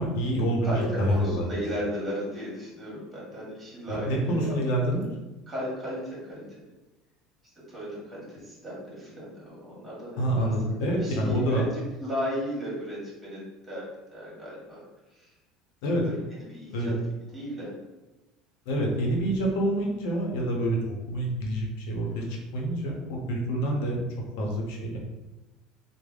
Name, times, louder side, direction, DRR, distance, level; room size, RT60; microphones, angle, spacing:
voice 1, 0.0-1.6 3.9-5.0 10.2-11.7 15.8-16.0 16.7-16.9 18.7-20.8 21.1-24.0 24.4-25.0, right 1 dB, 75° left, 0 dB, 0.7 m, -27 dB
voice 2, 0.6-4.6 5.5-6.4 7.7-10.5 10.8-13.4 13.7-13.8 14.1-14.8 15.1-15.3 16.0-16.9 17.3-17.7 22.1-22.2, equal, 15° right, -7 dB, 1.3 m, -35 dB
3.2 x 2.0 x 2.3 m, 1.1 s
supercardioid pair, 110°, 0 cm